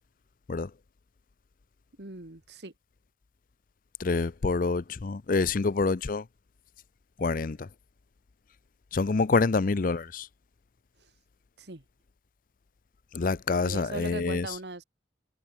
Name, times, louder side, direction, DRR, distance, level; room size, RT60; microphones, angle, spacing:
voice 1, 2.0-2.7 11.6-11.8 13.6-14.8, right 2 dB, 65° right, 1.8 m, -39 dB
voice 2, 4.0-6.2 7.2-7.7 8.9-10.3 13.1-14.5, left 4 dB, 50° left, 0.5 m, -27 dB
head